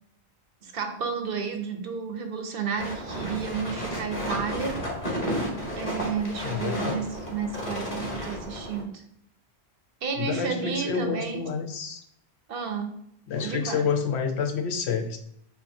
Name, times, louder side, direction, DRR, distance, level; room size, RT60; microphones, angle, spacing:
voice 1, 0.6-4.8 5.8-9.0 10.0-11.5 12.5-13.0 13.4-13.9, right 5 dB, 65° right, 6 dB, 0.8 m, -32 dB
sound 1, 2.8-8.8, equal, 30° left, 1.4 m, -32 dB
voice 2, 6.4-7.0 10.2-12.0 13.3-15.2, left 6 dB, 80° left, 5 dB, 0.9 m, -29 dB
6.9 x 2.7 x 2.6 m, 0.73 s
omnidirectional pair, 1.1 m